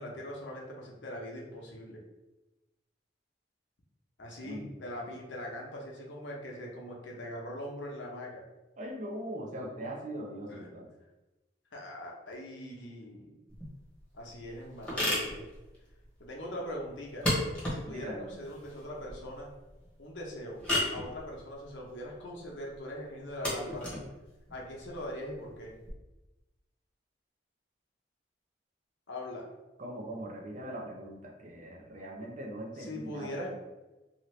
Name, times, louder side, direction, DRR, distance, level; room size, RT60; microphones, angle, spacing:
voice 1, 0.0-2.0 4.2-8.4 10.5-10.7 11.7-13.4 14.1-15.4 16.2-17.3 17.7-19.5 20.0-20.6 20.9-23.9 24.5-25.7 29.1-29.5 32.8-33.5, left 1 dB, 80° left, -1 dB, 0.8 m, -41 dB
voice 2, 4.4-4.7 8.8-10.9 17.9-18.3 29.8-33.5, right 1 dB, 40° right, -1 dB, 0.5 m, -41 dB
sound 1, 13.5-25.9, left 1 dB, 5° left, 0.9 m, -36 dB
2.7 x 2.5 x 3.1 m, 1.1 s
head